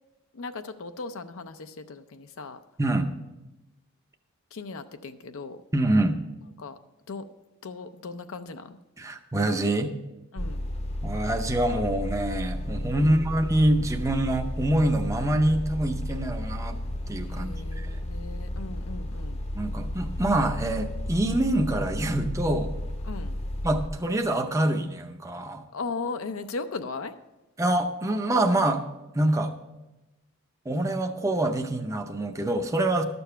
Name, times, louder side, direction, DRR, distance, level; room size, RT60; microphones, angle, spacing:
voice 1, 0.3-2.6 4.5-5.6 6.6-6.8 7.1-7.3 7.6-8.8 10.3-10.7 13.0-13.2 17.3-19.4 23.0-23.4 25.7-27.1, left 4 dB, 70° left, 0.5 m, -37 dB
voice 2, 5.7-6.2 9.0-9.9 11.0-16.8 17.1-18.0 19.5-22.7 23.6-25.6 27.6-28.8 29.1-29.5 30.7-33.0, right 1 dB, 15° right, 0.6 m, -25 dB
sound 1, 10.4-23.9, left 1 dB, 30° left, 0.7 m, -33 dB
12.5 x 6.9 x 5.6 m
head